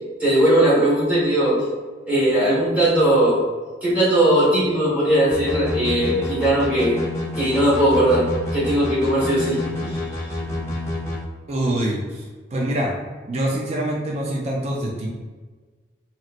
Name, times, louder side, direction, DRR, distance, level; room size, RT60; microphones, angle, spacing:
voice 1, 0.2-1.6 2.1-3.4 3.8-7.0 7.4-10.0, right 1 dB, 10° right, -8 dB, 1.4 m, -19 dB
sound 1, 5.3-11.2, left 1 dB, 15° left, 0.6 m, -28 dB
voice 2, 11.5-12.2 12.5-13.0 13.3-15.1, right 1 dB, 35° right, -2 dB, 0.4 m, -24 dB
3.0 x 2.8 x 2.5 m, 1.4 s
head